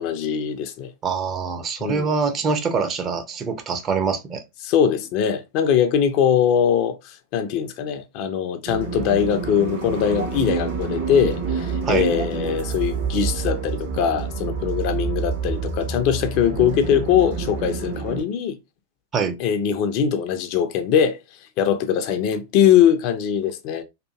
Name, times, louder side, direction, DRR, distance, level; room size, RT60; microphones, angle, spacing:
voice 1, 0.0-0.9 1.8-2.1 4.6-18.6 19.4-21.2 21.6-23.8, left 8 dB, 45° left, 0.4 m, -21 dB
voice 2, 1.0-4.4 11.8-12.1 19.1-19.4, right 5 dB, 25° right, 0.5 m, -24 dB
sound 1, 8.6-18.2, right 5 dB, 55° right, 1.1 m, -28 dB
2.7 x 2.5 x 2.3 m
figure-of-eight pair, 90°, 0 cm